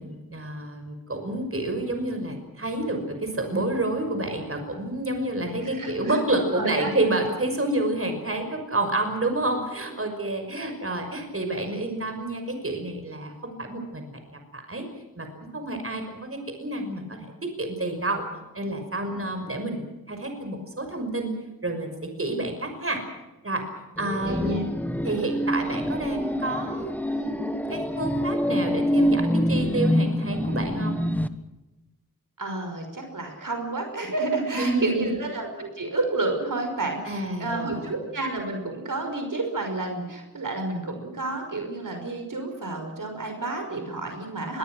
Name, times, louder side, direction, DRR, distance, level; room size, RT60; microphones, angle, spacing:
voice 1, 0.0-14.9 15.2-15.3 15.5-18.2 18.5-21.3 21.6-23.0 23.4-23.6 24.0-24.7 25.0-31.0 34.5-35.1 37.1-37.9, right 2 dB, 40° right, 5 dB, 5.9 m, -29 dB
voice 2, 5.6-6.2 6.5-6.9 24.2-24.6 32.4-44.6, right 2 dB, 65° right, 4 dB, 5.6 m, -30 dB
sound 1, 24.0-31.3, equal, 5° left, 1.5 m, -26 dB
26.5 x 22.5 x 6.3 m, 1.0 s
wide cardioid pair, 90°, 34 cm